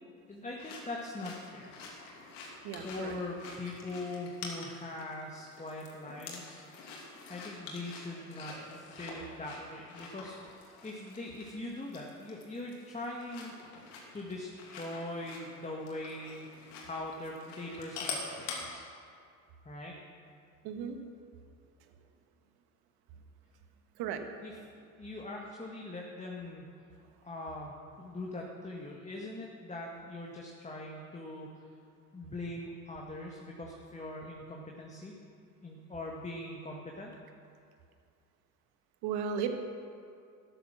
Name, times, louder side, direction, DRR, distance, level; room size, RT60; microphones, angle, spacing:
voice 1, 0.3-1.8 2.8-6.7 7.3-13.6 14.1-18.9 19.6-19.9 24.4-24.6 24.8-26.7 27.2-31.7 32.1-35.1 35.6-37.1, left 2 dB, 15° left, -1 dB, 1.8 m, -42 dB
sound 1, 0.6-18.6, left 4 dB, 65° left, 2.7 m, -47 dB
voice 2, 2.6-3.1 20.6-21.0 24.0-24.2 39.0-39.5, right 7 dB, 55° right, 6 dB, 1.6 m, -35 dB
13.0 x 10.5 x 6.3 m, 2.3 s
hypercardioid pair, 65°, 45 cm